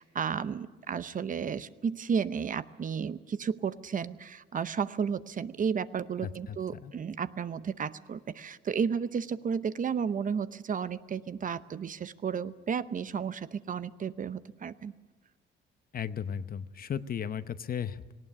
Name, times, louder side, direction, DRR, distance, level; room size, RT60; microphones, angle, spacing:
voice 1, 0.0-14.9, right 6 dB, 40° right, 14 dB, 0.7 m, -33 dB
voice 2, 6.2-6.6 6.8-6.9 15.9-18.1, left 8 dB, 45° left, 13 dB, 0.8 m, -35 dB
18.5 x 17.0 x 9.8 m, 1.3 s
cardioid pair, 90°, 20 cm